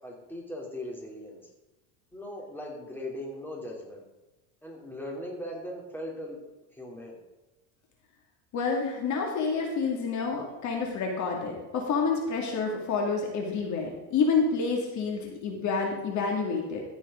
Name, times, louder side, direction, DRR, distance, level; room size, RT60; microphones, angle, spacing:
voice 1, 0.0-1.5 2.1-4.0 4.6-6.4 6.7-7.2, left 1 dB, 5° left, -2 dB, 3.1 m, -39 dB
voice 2, 8.5-16.8, left 4 dB, 50° left, 1 dB, 2.4 m, -28 dB
14.5 x 7.0 x 3.8 m, 1.1 s
supercardioid pair, 110°, 38 cm